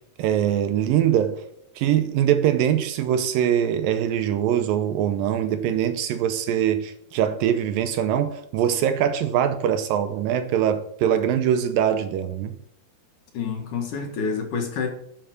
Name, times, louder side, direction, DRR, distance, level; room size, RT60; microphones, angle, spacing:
voice 1, 0.2-1.4 1.8-12.5, right 10 dB, 80° right, 2.1 m, -22 dB
voice 2, 13.3-14.9, left 5 dB, 60° left, 2.7 m, -28 dB
9.4 x 7.5 x 6.5 m
omnidirectional pair, 4.7 m